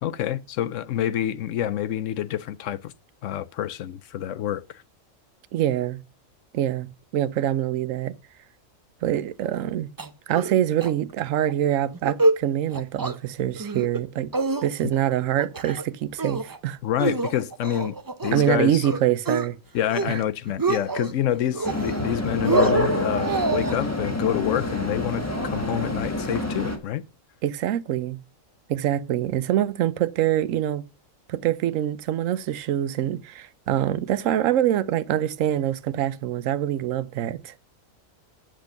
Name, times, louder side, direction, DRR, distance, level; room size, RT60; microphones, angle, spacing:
voice 1, 0.0-2.9 3.2-4.6 16.8-18.0 18.2-18.9 19.7-27.0, left 11 dB, 70° left, 1.0 m, -27 dB
voice 2, 5.5-6.0 6.5-6.9 7.1-8.1 9.0-9.9 10.3-14.3 14.6-16.8 18.3-19.6 20.1-20.2 27.4-28.2 28.7-30.8 31.3-37.5, right 12 dB, 75° right, 1.0 m, -25 dB
sound 1, 10.0-10.5 10.8-10.9 11.3-11.5 11.9-12.4 12.7-13.2 13.6-14.0 14.3-15.0 15.4-15.9 16.2-16.6 17.0-18.5 18.8-19.5 19.8-20.2 20.5-21.1 21.5-22.1 22.4-23.8, right 3 dB, 30° right, 0.4 m, -27 dB
sound 2, 21.6-26.8, left 1 dB, 10° left, 1.5 m, -26 dB
8.3 x 6.2 x 6.5 m
omnidirectional pair, 1.4 m